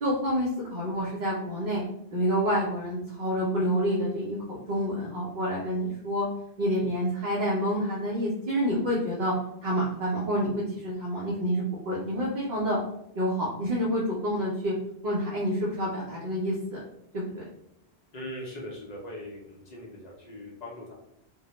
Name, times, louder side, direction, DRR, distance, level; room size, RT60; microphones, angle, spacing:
voice 1, 0.0-1.8 2.1-6.3 6.6-9.3 9.6-12.8 13.2-14.7 15.0-16.8 17.1-17.5, equal, 55° right, -5 dB, 0.6 m, -28 dB
voice 2, 18.1-20.9, left 1 dB, 50° left, -3 dB, 0.6 m, -40 dB
2.2 x 2.0 x 2.8 m, 0.77 s
omnidirectional pair, 1.1 m